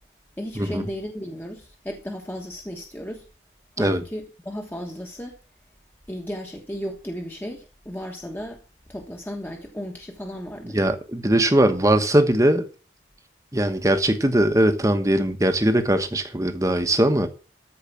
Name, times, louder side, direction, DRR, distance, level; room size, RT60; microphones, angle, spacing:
voice 1, 0.4-3.3 3.8-5.4 6.1-8.6 8.9-10.8, equal, 10° left, 1.2 m, -34 dB
voice 2, 10.7-12.7 13.5-17.3, right 1 dB, 15° right, 1.1 m, -20 dB
13.5 x 4.8 x 7.1 m
head